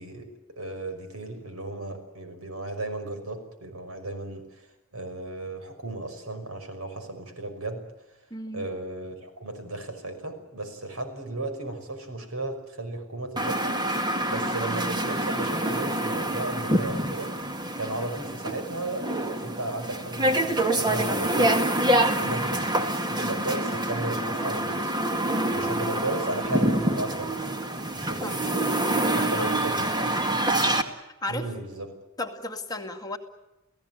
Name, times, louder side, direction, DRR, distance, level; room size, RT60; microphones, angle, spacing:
voice 1, 0.0-4.7 4.9-7.8 8.5-17.4 17.8-21.7 22.2-27.4 27.9-28.5 29.2-29.9 31.3-32.0, right 2 dB, 80° right, 7 dB, 5.7 m, -35 dB
voice 2, 8.3-8.7 28.2-28.4 29.1-29.5 31.0-31.5 32.2-33.2, left 1 dB, 20° left, 4 dB, 2.3 m, -34 dB
sound 1, 13.4-30.8, right 1 dB, 20° right, 2.0 m, -26 dB
29.5 x 17.5 x 9.2 m, 0.97 s
head